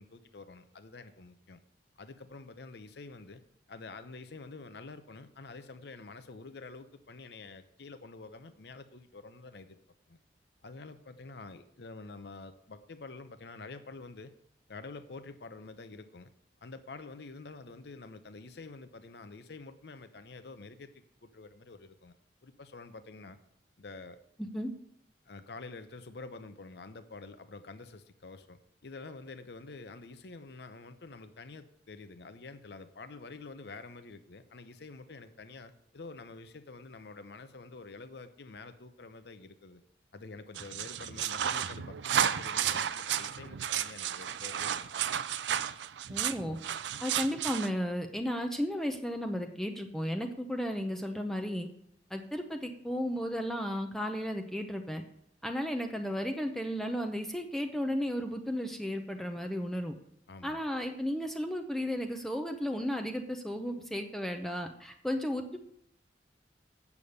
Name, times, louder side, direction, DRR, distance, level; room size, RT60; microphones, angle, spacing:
voice 1, 0.0-1.6 2.0-3.4 3.7-9.8 10.1-10.2 10.6-14.3 14.7-16.3 16.6-22.1 22.4-23.4 23.8-24.2 25.3-39.8 40.1-45.0 60.3-60.6, left 3 dB, 65° left, 10 dB, 0.7 m, -48 dB
voice 2, 24.4-24.7 46.1-46.6 47.0-51.7 52.1-55.0 55.4-59.9 60.4-65.6, equal, ahead, 5 dB, 0.6 m, -34 dB
sound 1, 40.5-47.7, right 9 dB, 75° right, 0.4 m, -33 dB
8.3 x 7.1 x 6.5 m, 0.71 s
head